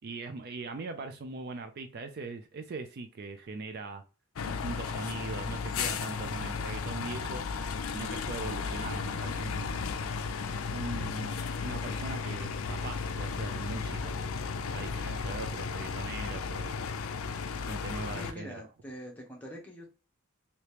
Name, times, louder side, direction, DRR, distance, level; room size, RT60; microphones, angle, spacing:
voice 1, 0.0-4.0 4.5-7.4 7.9-9.9 10.7-14.2 14.7-16.9 17.6-18.6, right 3 dB, 50° right, 0.4 m, -41 dB
sound 1, 4.4-18.3, left 5 dB, 75° left, 0.4 m, -34 dB
voice 2, 18.2-19.9, equal, 10° left, 0.9 m, -44 dB
3.0 x 2.8 x 3.3 m
head